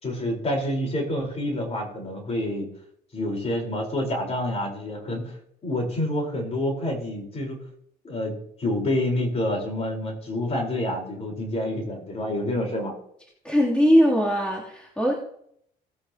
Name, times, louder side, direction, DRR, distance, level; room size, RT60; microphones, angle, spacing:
voice 1, 0.0-2.7 3.1-5.3 5.6-7.6 8.0-12.9, left 1 dB, 35° left, 0 dB, 4.4 m, -28 dB
voice 2, 13.4-15.1, equal, 5° left, -5 dB, 3.0 m, -20 dB
18.5 x 8.6 x 2.9 m, 0.69 s
cardioid pair, 110°, 17 cm